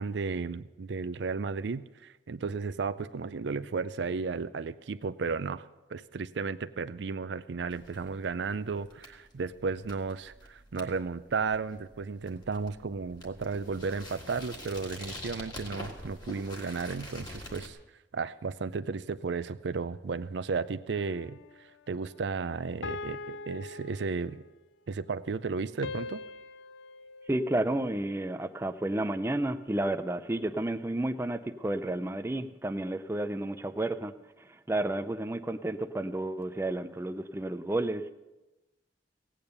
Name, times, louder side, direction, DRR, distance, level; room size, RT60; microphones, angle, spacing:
voice 1, 0.0-17.8 18.1-24.4 24.9-26.2, right 4 dB, 70° right, 14 dB, 0.5 m, -34 dB
sound 1, 7.7-17.7, left 1 dB, 25° left, 1.6 m, -46 dB
sound 2, 20.9-21.6 22.8-24.6 25.8-28.2, left 3 dB, 85° left, 0.5 m, -42 dB
voice 2, 27.3-38.1, right 1 dB, 15° right, 9 dB, 0.4 m, -31 dB
16.5 x 8.8 x 6.7 m, 1.1 s
head